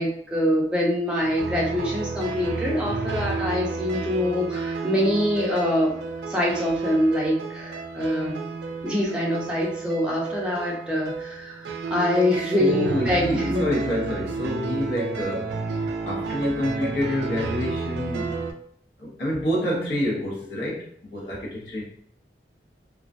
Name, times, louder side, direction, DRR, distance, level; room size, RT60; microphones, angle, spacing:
voice 1, 0.0-5.9 6.3-8.4 8.8-13.7, left 1 dB, 5° right, 0.5 m, -24 dB
sound 1, 1.2-18.5, right 4 dB, 70° right, 0.3 m, -31 dB
voice 2, 12.6-15.6 16.0-18.4 19.0-21.8, left 1 dB, 60° left, 0.6 m, -27 dB
2.3 x 2.1 x 2.5 m
head